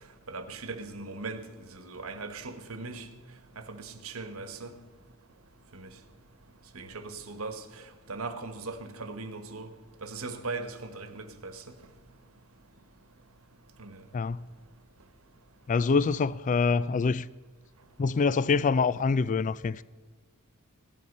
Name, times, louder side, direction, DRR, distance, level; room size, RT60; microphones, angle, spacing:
voice 1, 0.3-1.4 1.7-3.1 3.6-4.8 5.7-5.9 6.7-7.6 8.1-9.7 10.0-11.6 13.8-13.9, right 3 dB, 75° right, 1.3 m, -39 dB
voice 2, 14.1-14.5 15.7-17.3 18.0-19.8, left 4 dB, 35° left, 0.3 m, -25 dB
16.0 x 11.5 x 5.4 m
head